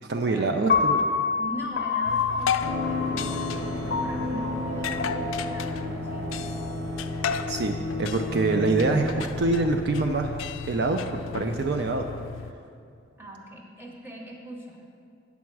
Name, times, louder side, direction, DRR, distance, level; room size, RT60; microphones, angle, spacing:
voice 1, 0.0-1.0 7.5-10.4 10.7-12.1, right 3 dB, 55° right, 5 dB, 0.4 m, -25 dB
Piano, 0.7-6.9, left 5 dB, 50° left, 0.7 m, -28 dB
voice 2, 1.4-6.6 13.2-14.8, equal, 10° right, -1 dB, 0.9 m, -41 dB
night station, 2.0-12.5, left 6 dB, 85° left, 0.3 m, -34 dB
sound 1, 2.6-11.1 11.4-11.5, left 1 dB, 90° right, 1.2 m, -33 dB
8.5 x 7.1 x 4.6 m, 2.4 s
head